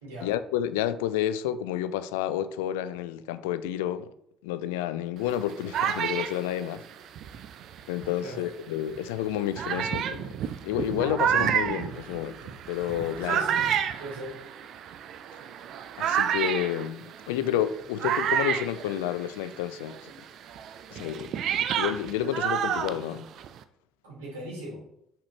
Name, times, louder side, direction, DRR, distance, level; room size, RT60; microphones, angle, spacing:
voice 1, 0.2-4.1 4.4-6.8 7.9-13.4 16.0-20.1 20.9-21.3 21.8-23.3, left 11 dB, 70° left, 0.3 m, -30 dB
sound 1, 5.3-8.3 9.0-9.1 9.6-19.6 19.9-23.6, right 9 dB, 55° right, 0.4 m, -30 dB
voice 2, 8.1-8.5 13.2-13.7 14.0-14.4 24.0-24.8, right 1 dB, 75° right, 2.7 m, -39 dB
6.1 x 5.9 x 3.1 m
figure-of-eight pair, 50°, 0 cm